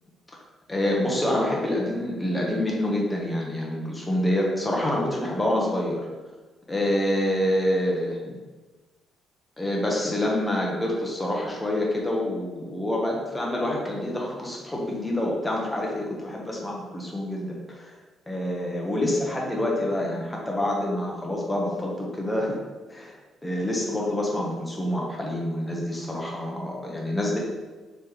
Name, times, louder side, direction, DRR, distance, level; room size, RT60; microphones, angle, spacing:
voice 1, 0.7-6.0 6.7-8.4 9.6-17.9 18.3-22.6 22.9-23.1 23.4-27.4, left 1 dB, 10° left, -2 dB, 1.1 m, -27 dB
4.1 x 3.2 x 3.4 m, 1.2 s
cardioid pair, 90°, 0 cm